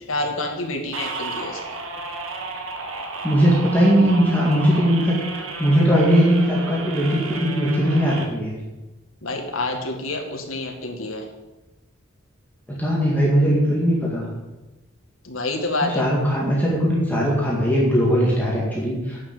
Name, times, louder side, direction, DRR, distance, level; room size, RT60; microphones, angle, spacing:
voice 1, 0.1-1.6 9.2-11.3 15.2-16.1, left 2 dB, 80° left, 3 dB, 1.9 m, -27 dB
sound 1, 0.9-8.3, right 3 dB, 90° right, 1.7 m, -33 dB
voice 2, 3.2-8.5 12.8-14.3 15.9-19.2, equal, 10° left, -5 dB, 2.0 m, -19 dB
8.6 x 7.1 x 8.3 m, 1.1 s
head